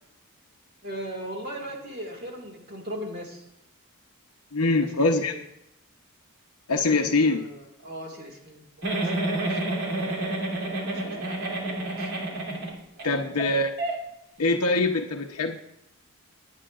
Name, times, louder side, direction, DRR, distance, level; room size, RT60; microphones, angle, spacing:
voice 1, 0.8-3.4 4.6-4.9 5.2-5.4 6.9-8.6 9.1-9.8 10.9-12.1 13.0-13.3, right 1 dB, 45° right, 0 dB, 2.0 m, -39 dB
voice 2, 4.5-5.4 6.7-7.5 13.0-13.7 14.4-15.6, left 2 dB, 80° left, 3 dB, 0.8 m, -23 dB
Giggle, 8.8-13.1 13.4-13.5 13.8-13.9, right 2 dB, 70° right, 3.1 m, -29 dB
20.5 x 9.6 x 2.5 m, 0.84 s
head